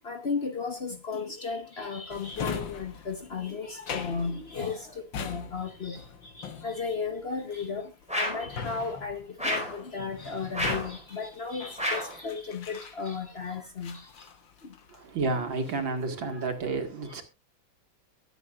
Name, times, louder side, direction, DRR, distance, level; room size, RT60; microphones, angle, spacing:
voice 1, 0.1-4.8 5.2-6.0 6.6-7.9 8.2-14.0, left 5 dB, 40° left, 1.0 m, -34 dB
Drawer open or close, 2.1-13.4 13.8-15.1 15.4-16.0, left 6 dB, 80° left, 2.0 m, -41 dB
sound 1, 8.1-8.5 9.4-9.8 10.5-10.9 11.8-12.2, equal, 5° right, 4.6 m, -30 dB
voice 2, 15.0-17.2, right 3 dB, 85° right, 2.6 m, -30 dB
23.0 x 7.9 x 2.5 m
omnidirectional pair, 2.0 m